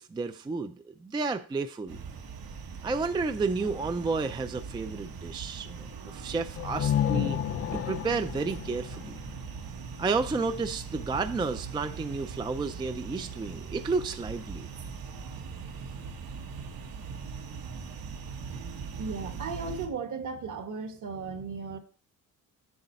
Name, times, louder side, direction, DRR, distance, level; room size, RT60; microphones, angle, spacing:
voice 1, 0.0-2.0 2.8-7.4 7.7-9.2 10.0-14.7, right 4 dB, 15° right, 9 dB, 0.3 m, -31 dB
sound 1, 1.9-19.9, right 5 dB, 75° right, 1.4 m, -41 dB
sound 2, 6.5-10.3, left 10 dB, 40° left, 0.5 m, -31 dB
voice 2, 19.0-21.8, right 4 dB, 55° right, 7 dB, 1.4 m, -36 dB
7.9 x 7.2 x 4.3 m, 0.37 s
cardioid pair, 160°, 36 cm